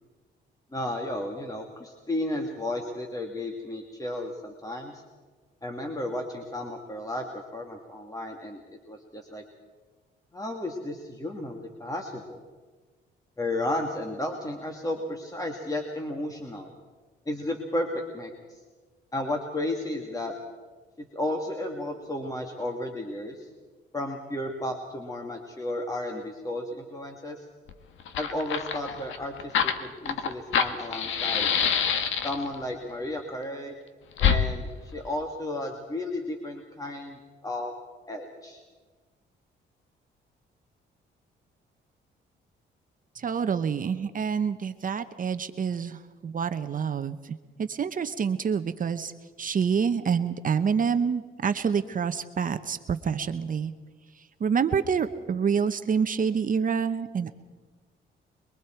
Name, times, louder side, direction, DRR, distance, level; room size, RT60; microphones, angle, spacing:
voice 1, 0.7-5.0 5.6-9.4 10.3-12.4 13.4-16.7 17.3-18.6 19.1-20.3 21.0-23.5 23.9-27.4 28.2-31.5 32.2-33.8 34.2-37.7 38.1-38.6, left 1 dB, 15° left, 2 dB, 2.3 m, -33 dB
Fire, 27.7-27.8 28.0-32.6 34.2-34.4, left 7 dB, 80° left, 1.5 m, -26 dB
voice 2, 43.1-49.1 49.4-53.7 54.2-57.3, right 6 dB, 45° right, 9 dB, 0.9 m, -27 dB
26.5 x 22.0 x 4.6 m, 1.4 s
cardioid pair, 90°, 20 cm